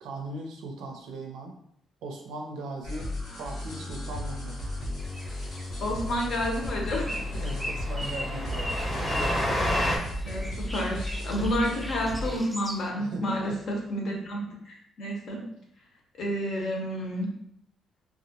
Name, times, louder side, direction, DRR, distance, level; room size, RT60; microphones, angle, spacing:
voice 1, 0.0-1.5 2.0-3.1 3.4-4.7 7.3-8.7 13.0-13.6, right 2 dB, 85° right, 2 dB, 0.4 m, -38 dB
sound 1, 2.8-12.4, left 1 dB, 80° left, 1.1 m, -34 dB
sound 2, 5.0-12.9, equal, ahead, 0.3 m, -39 dB
Train, 5.4-5.5 5.8-5.9 6.2-6.3 6.6-10.0, left 1 dB, 30° left, 0.7 m, -31 dB
voice 2, 5.8-7.2 10.2-15.4 16.2-17.3, equal, 65° left, -1 dB, 0.7 m, -30 dB
2.3 x 2.0 x 2.7 m, 0.70 s
cardioid pair, 90°, 0 cm